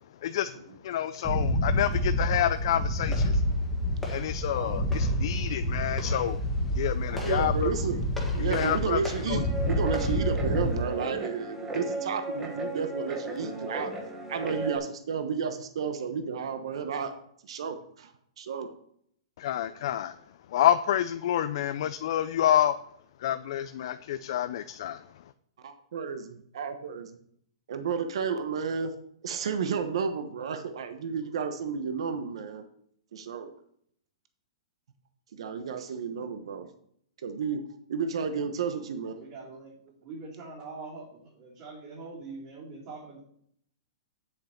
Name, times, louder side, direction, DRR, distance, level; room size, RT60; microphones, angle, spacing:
voice 1, 0.8-3.4 4.1-6.4 6.7-7.7 8.4-9.0 9.3-9.4 19.4-20.1 20.5-22.8 23.2-25.0, left 11 dB, 55° left, 11 dB, 0.4 m, -28 dB
sound 1, 1.2-10.7, equal, 5° left, 1.5 m, -28 dB
voice 2, 7.1-8.0 8.3-13.9 14.3-17.1 17.4-18.7 25.6-27.1 27.7-28.9 29.2-32.6 33.1-33.5 35.3-36.7 37.2-37.6 37.9-39.1, right 6 dB, 70° right, 8 dB, 1.1 m, -32 dB
Guitar, 9.3-14.8, right 1 dB, 15° right, 1.3 m, -35 dB
voice 3, 39.1-43.2, right 3 dB, 40° right, -9 dB, 3.3 m, -43 dB
8.0 x 7.9 x 4.4 m, 0.67 s
hypercardioid pair, 160°, 3 cm